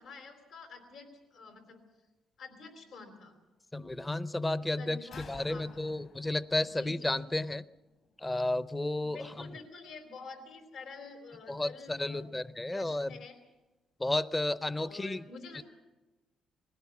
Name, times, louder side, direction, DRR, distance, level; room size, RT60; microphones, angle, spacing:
voice 1, 0.0-1.8 2.4-3.3 4.8-5.7 6.7-7.1 9.0-12.3 12.7-13.4 14.7-15.6, left 4 dB, 75° left, 5 dB, 3.8 m, -48 dB
voice 2, 3.7-7.7 8.2-9.6 11.5-13.2 14.0-15.2 15.5-15.6, left 2 dB, 15° left, 17 dB, 0.6 m, -32 dB
sound 1, 5.1-8.6, left 4 dB, 60° left, 3.3 m, -55 dB
21.0 x 16.5 x 8.5 m, 1.1 s
cardioid pair, 90°, 0 cm